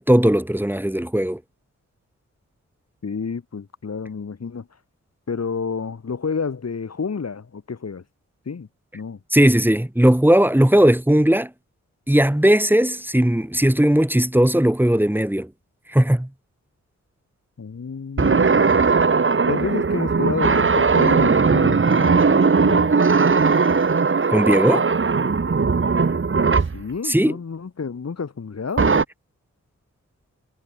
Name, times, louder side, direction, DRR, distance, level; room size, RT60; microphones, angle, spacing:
voice 1, 0.0-1.4 9.3-11.5 12.1-15.5 15.9-16.3 24.3-24.9 27.0-27.4, right 1 dB, 5° right, 2.6 m, -17 dB
voice 2, 3.0-4.7 5.3-8.0 8.4-8.7 8.9-9.2 17.6-18.9 19.5-23.0 26.7-29.0, left 5 dB, 60° left, 4.9 m, -30 dB
sound 1, 18.2-26.8 28.8-29.0, right 4 dB, 45° right, 2.0 m, -18 dB
cardioid pair, 70°, 30 cm